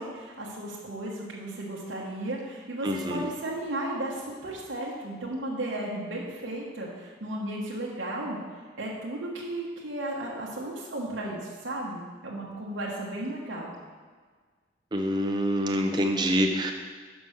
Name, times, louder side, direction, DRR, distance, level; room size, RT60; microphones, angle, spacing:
voice 1, 0.0-8.4 8.8-13.7, right 1 dB, 70° right, -5 dB, 1.1 m, -34 dB
voice 2, 2.8-3.2 14.9-16.7, equal, 20° right, 3 dB, 0.6 m, -26 dB
6.0 x 5.5 x 6.4 m, 1.5 s
head